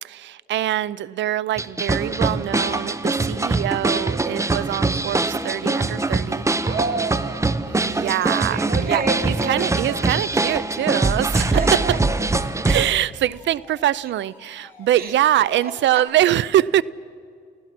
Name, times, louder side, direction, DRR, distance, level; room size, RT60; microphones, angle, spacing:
voice 1, 0.0-6.5 7.7-11.6 12.6-16.8, right 12 dB, 65° right, 0.5 m, -23 dB
sound 1, 1.6-12.9, right 2 dB, 15° right, 0.8 m, -23 dB
Alarm, 5.2-16.1, left 2 dB, 10° left, 6.3 m, -49 dB
voice 2, 6.6-7.5 7.8-10.1 11.3-12.7 14.9-16.0, right 4 dB, 50° right, 2.6 m, -30 dB
29.0 x 16.0 x 6.0 m
cardioid pair, 90°, 20 cm